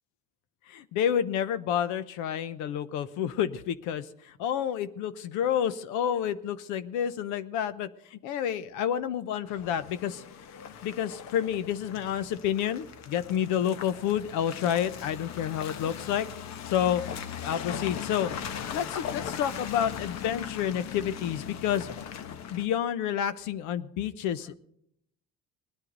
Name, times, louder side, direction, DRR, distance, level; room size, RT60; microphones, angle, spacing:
voice 1, 0.7-10.2 10.8-16.3 16.7-17.0 17.4-18.3 18.7-21.9 22.5-24.5, left 9 dB, 90° left, 13 dB, 0.9 m, -29 dB
Car passing by / Engine, 9.5-22.7, left 8 dB, 65° left, 1.1 m, -39 dB
20.0 x 10.0 x 3.9 m, 0.73 s
cardioid pair, 100°, 29 cm